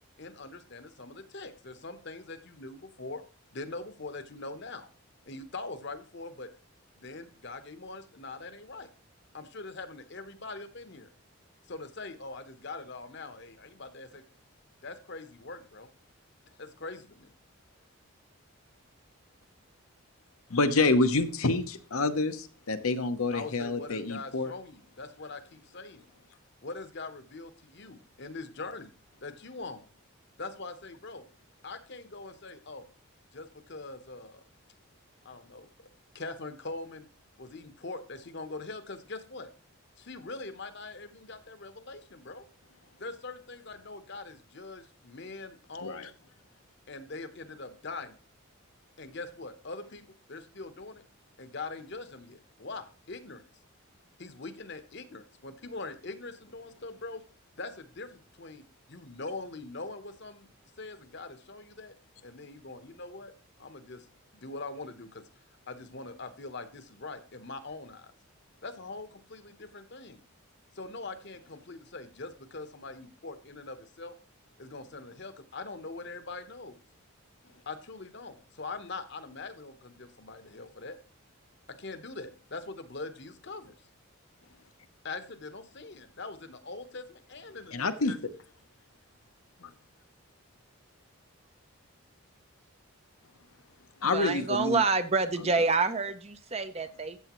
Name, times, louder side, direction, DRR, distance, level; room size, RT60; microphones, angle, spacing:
voice 1, 0.2-3.2 3.5-4.9 5.3-6.5 7.0-8.9 9.3-11.1 11.7-14.2 14.8-15.9 16.6-17.3 23.3-26.1 26.6-28.9 29.2-29.9 30.4-31.3 31.6-32.9 33.3-34.4 35.2-35.9 36.1-37.1 37.4-39.5 40.0-42.5 43.0-46.1 46.9-48.2 49.0-50.0 50.3-51.0 51.4-53.4 54.2-57.2 57.6-60.5 60.8-61.9 62.2-63.3 63.6-64.1 64.3-65.3 65.7-68.1 68.6-70.2 70.7-74.2 74.6-76.8 77.7-81.0 81.7-83.8 85.0-88.1, left 3 dB, 50° left, 1.0 m, -42 dB
voice 2, 20.5-24.5 45.8-46.1 87.7-88.2 89.6-89.7 94.0-94.8, left 3 dB, 75° left, 0.9 m, -27 dB
voice 3, 94.1-97.2, right 4 dB, 30° right, 0.6 m, -27 dB
14.0 x 7.9 x 3.1 m
head